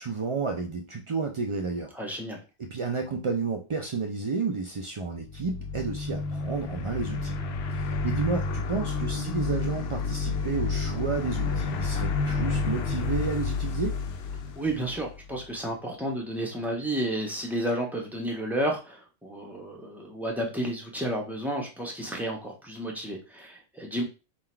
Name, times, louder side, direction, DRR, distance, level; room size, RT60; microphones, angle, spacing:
voice 1, 0.0-1.9 2.6-7.3 7.7-14.0, right 4 dB, 55° right, 2 dB, 0.3 m, -31 dB
voice 2, 1.9-2.4 14.6-24.0, right 1 dB, ahead, -1 dB, 1.0 m, -31 dB
sound 1, 5.2-15.4, left 4 dB, 65° left, 0.8 m, -30 dB
3.8 x 2.5 x 4.3 m, 0.31 s
omnidirectional pair, 1.2 m